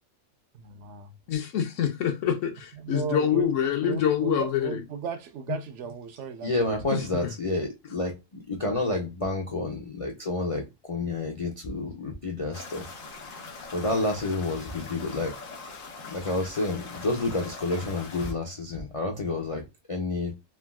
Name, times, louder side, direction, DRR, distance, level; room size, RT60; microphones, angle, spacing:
voice 1, 0.6-1.1 2.8-3.5 3.8-7.0, right 7 dB, 70° right, 0.8 m, -36 dB
voice 2, 1.3-4.8 6.9-7.3, left 9 dB, 75° left, 1.0 m, -26 dB
voice 3, 6.4-12.9 13.7-15.3 16.0-19.6 19.9-20.3, left 2 dB, 45° left, 0.4 m, -29 dB
sound 1, 12.5-18.3, left 4 dB, 90° left, 1.3 m, -42 dB
3.5 x 2.3 x 2.2 m
omnidirectional pair, 1.4 m